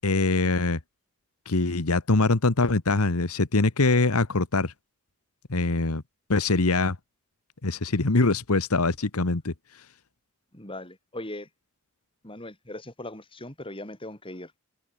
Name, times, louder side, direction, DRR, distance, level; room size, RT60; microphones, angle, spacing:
voice 1, 0.0-0.8 1.5-4.7 5.5-6.0 6.3-7.0 7.6-9.5, left 3 dB, 85° left, 1.4 m, -23 dB
voice 2, 10.5-11.5 12.2-14.6, left 1 dB, 25° left, 5.3 m, -39 dB
head